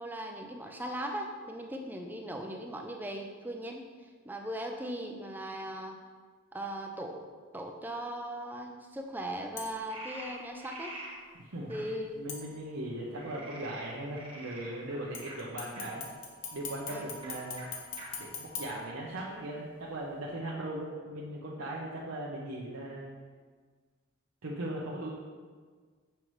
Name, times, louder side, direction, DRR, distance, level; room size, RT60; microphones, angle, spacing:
voice 1, 0.0-3.8 4.2-6.0 6.5-7.2 7.5-11.0 11.7-12.1 16.9-17.1, right 1 dB, 10° right, 3 dB, 0.4 m, -38 dB
sound 1, 9.6-10.0 12.3-13.0 15.1-19.5 20.0-20.1, left 5 dB, 60° left, 0.9 m, -43 dB
Frog, 9.9-11.1 11.7-11.8 13.1-15.8 16.8-17.0 17.2-17.3 17.6-17.7 18.0-18.1 18.7-19.4, right 2 dB, 25° right, 1.2 m, -46 dB
voice 2, 11.4-16.0 16.5-17.8 18.2-23.2 24.4-25.1, right 1 dB, 85° right, -5 dB, 0.8 m, -39 dB
6.5 x 5.7 x 3.1 m, 1.6 s
head